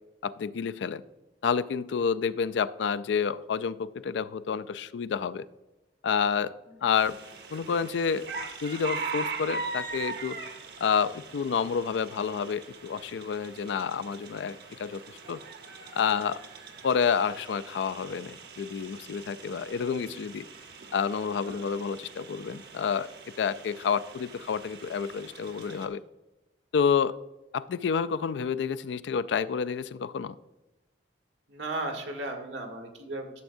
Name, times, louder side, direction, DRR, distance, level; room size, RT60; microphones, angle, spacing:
voice 1, 0.2-1.0 1.4-5.5 6.0-6.5 6.8-7.2 7.5-8.3 8.6-10.4 10.8-15.0 15.3-15.4 15.9-16.4 16.8-20.5 20.9-23.1 23.4-26.0 26.7-27.2 27.5-30.4, left 6 dB, 75° left, 15 dB, 0.3 m, -29 dB
sound 1, 6.9-25.9, right 4 dB, 60° right, 1.0 m, -41 dB
voice 2, 31.5-33.4, right 2 dB, 80° right, 3 dB, 1.6 m, -36 dB
12.5 x 7.0 x 2.6 m, 1.1 s
head